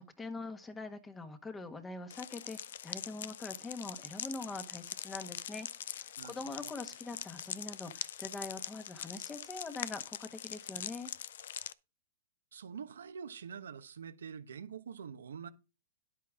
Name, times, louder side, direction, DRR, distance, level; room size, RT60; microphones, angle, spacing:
voice 1, 0.0-11.1, left 3 dB, 10° left, 1.4 m, -44 dB
sound 1, 2.1-11.7, left 10 dB, 70° left, 0.6 m, -43 dB
voice 2, 6.2-6.7 12.5-15.5, right 7 dB, 85° right, 1.1 m, -46 dB
10.5 x 8.5 x 3.7 m
hypercardioid pair, 135°, 0 cm